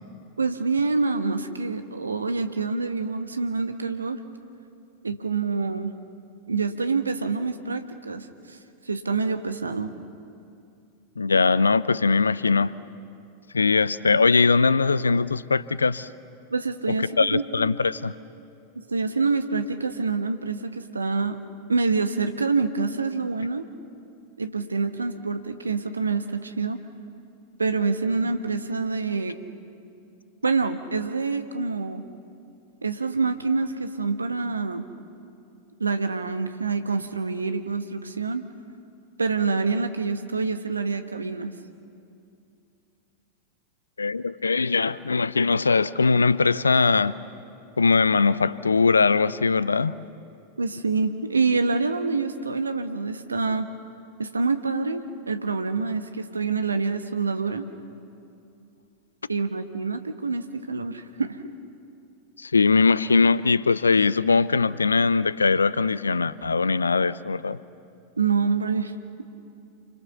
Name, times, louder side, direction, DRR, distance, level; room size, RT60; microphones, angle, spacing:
voice 1, 0.4-4.2 5.0-5.9 6.5-8.6 8.9-9.9 16.5-17.4 18.7-21.4 21.7-23.6 24.4-26.8 27.6-29.3 30.4-32.0 32.8-34.8 35.8-38.5 39.2-41.5 50.6-53.7 54.2-57.7 59.3-61.4 68.2-68.9, right 4 dB, 75° right, 1.4 m, -26 dB
voice 2, 11.2-12.7 13.5-16.1 17.0-18.1 44.0-47.2 47.8-49.9 62.4-67.6, left 4 dB, 75° left, 0.6 m, -21 dB
29.0 x 25.5 x 7.0 m
figure-of-eight pair, 90°, 0 cm